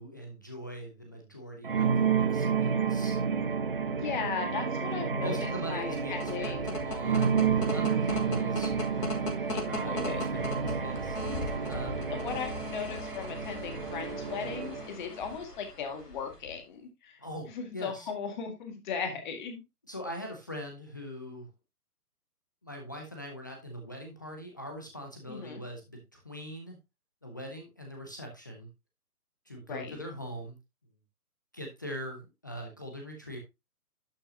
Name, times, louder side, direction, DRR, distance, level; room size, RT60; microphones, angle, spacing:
voice 1, 0.0-3.2 5.1-8.7 9.7-12.0 17.2-18.1 19.9-21.5 22.6-26.8 27.2-28.7 29.5-30.6 31.5-33.4, equal, 15° left, 0.6 m, -42 dB
sound 1, 1.6-14.9, right 6 dB, 40° right, 0.5 m, -30 dB
voice 2, 3.9-6.8 9.5-10.2 11.6-11.7 12.1-17.2 17.5-19.6 25.3-25.6 29.7-30.0, left 6 dB, 30° left, 1.9 m, -37 dB
sound 2, 5.8-16.6, left 2 dB, 85° left, 3.0 m, -39 dB
11.5 x 5.5 x 2.8 m
figure-of-eight pair, 140°, 47 cm